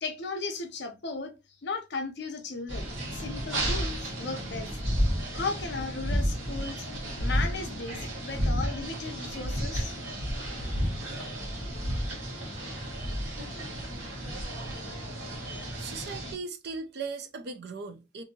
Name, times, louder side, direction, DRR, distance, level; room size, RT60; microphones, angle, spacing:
voice 1, 0.0-1.3 1.6-6.9 7.2-10.0, left 4 dB, 55° left, 0.6 m, -36 dB
sound 1, 2.7-16.3, equal, 75° right, 1.1 m, -32 dB
voice 2, 15.8-18.2, right 4 dB, 50° right, 0.4 m, -38 dB
2.7 x 2.6 x 2.6 m
head